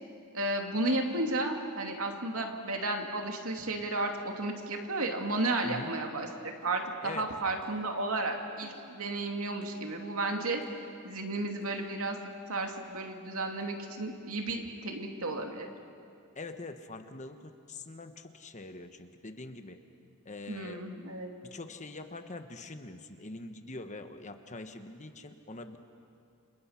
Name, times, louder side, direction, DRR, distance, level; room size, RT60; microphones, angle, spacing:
voice 1, 0.3-10.6 11.0-12.2 12.5-15.7 20.5-21.3, right 2 dB, 70° right, 3 dB, 2.6 m, -33 dB
sound 1, 6.6-6.8 7.6-7.9 8.6-8.9 9.6-9.8 10.6-10.8 11.6-11.9 12.6-12.8 13.6-13.7, equal, 25° right, 7.7 m, -58 dB
voice 2, 7.0-7.3 16.3-19.8 20.2-20.9 21.4-25.8, left 2 dB, 30° left, 7 dB, 1.2 m, -44 dB
29.5 x 27.0 x 5.9 m, 2.4 s
head